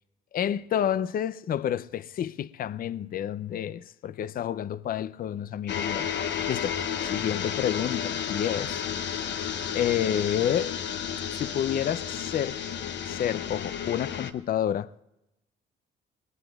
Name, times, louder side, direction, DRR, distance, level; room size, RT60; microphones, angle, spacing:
voice 1, 0.3-8.8 9.4-10.7 11.3-12.6 13.0-14.9, left 10 dB, 50° left, 0.4 m, -29 dB
sound 1, 5.7-14.3, left 8 dB, 65° left, 0.9 m, -32 dB
22.5 x 19.0 x 2.3 m
cardioid pair, 90°, 20 cm